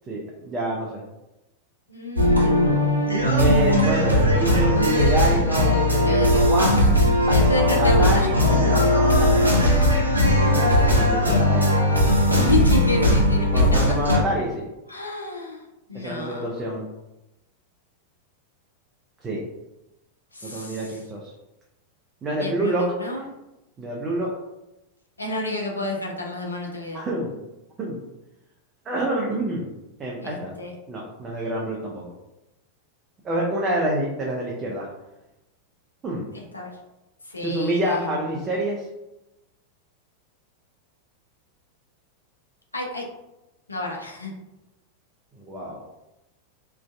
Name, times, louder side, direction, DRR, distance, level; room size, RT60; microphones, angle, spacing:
voice 1, 0.1-1.0 3.4-6.8 7.2-9.3 10.5-11.8 13.5-14.7 15.9-16.9 19.2-19.4 20.4-21.3 22.2-22.9 23.8-24.3 26.9-27.3 27.8-28.0 28.9-29.7 30.0-30.5 30.9-32.1 33.2-34.9 36.0-36.3 37.4-38.9 45.4-45.8, right 1 dB, 20° right, -3 dB, 0.4 m, -27 dB
voice 2, 1.9-2.9 6.0-6.4 6.7-7.0 7.3-8.3 12.4-14.0 14.9-15.6 15.9-16.5 20.3-20.8 22.4-23.2 25.2-27.0 30.2-30.7 36.3-36.7 37.3-38.0 42.7-43.0 43.7-44.3, left 2 dB, 80° left, 0 dB, 0.4 m, -30 dB
sound 1, 2.2-14.2, left 1 dB, 85° right, 0.5 m, -18 dB
2.5 x 2.2 x 2.2 m, 0.96 s
figure-of-eight pair, 90°, 0 cm